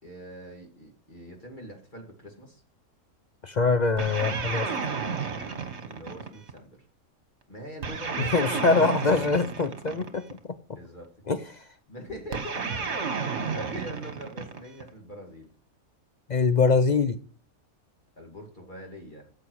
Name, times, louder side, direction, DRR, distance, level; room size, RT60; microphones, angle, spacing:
voice 1, 0.0-2.6 5.8-6.7 7.5-8.9 10.7-11.1 11.9-12.7 13.4-15.5 18.2-19.3, equal, 35° left, 2.5 m, -42 dB
voice 2, 3.4-4.7 8.2-10.4 11.3-11.6 16.3-17.2, left 4 dB, 50° left, 0.5 m, -24 dB
sound 1, 4.0-6.6 7.8-10.4 12.3-14.9, right 5 dB, 50° right, 1.6 m, -32 dB
14.0 x 7.5 x 4.7 m
omnidirectional pair, 1.5 m